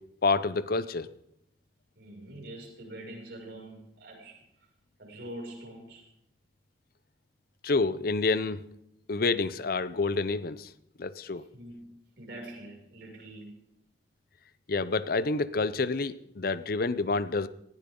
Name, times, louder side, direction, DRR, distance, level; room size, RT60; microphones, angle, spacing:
voice 1, 0.2-1.1 7.6-8.6 9.1-10.7 11.0-11.4 14.7-17.5, left 3 dB, 55° left, 0.6 m, -28 dB
voice 2, 2.0-4.4 5.0-6.1 11.5-11.9 12.2-13.6, right 1 dB, 75° right, 6.3 m, -44 dB
19.5 x 16.0 x 3.9 m
head